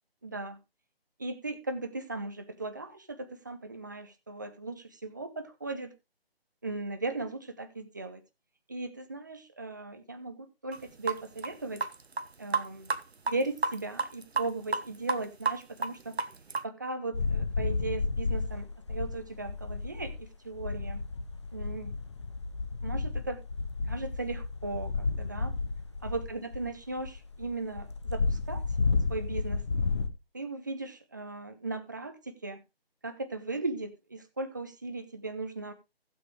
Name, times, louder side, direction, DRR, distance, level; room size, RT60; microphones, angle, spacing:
voice 1, 0.2-0.6 1.2-5.9 6.6-8.2 8.7-11.9 12.4-12.9 13.3-16.2 16.6-21.0 21.5-22.0 22.8-23.4 23.9-25.5 26.0-28.6 29.1-29.6 30.3-32.6 33.0-35.7, right 2 dB, 20° right, 0.6 m, -37 dB
sound 1, 10.7-10.8 11.1-12.3 12.5-13.0 13.3-14.8 15.1-16.6, right 4 dB, 85° right, 1.0 m, -30 dB
sound 2, 17.1-20.2 20.5-30.1, left 4 dB, 30° left, 0.7 m, -32 dB
15.5 x 7.4 x 3.1 m
figure-of-eight pair, 160°, 31 cm